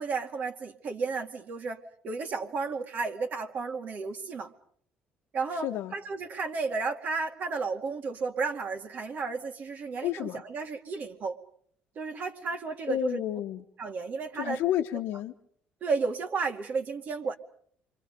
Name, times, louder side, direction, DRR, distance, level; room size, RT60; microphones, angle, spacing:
voice 1, 0.0-4.5 5.3-11.4 12.0-13.2 13.8-14.6 15.8-17.4, right 4 dB, 45° right, 5 dB, 2.3 m, -33 dB
voice 2, 5.5-5.9 10.0-10.4 12.9-13.6 14.3-15.3, left 12 dB, 70° left, 2 dB, 1.1 m, -31 dB
29.0 x 25.0 x 5.3 m, 0.62 s
cardioid pair, 140°, 4 cm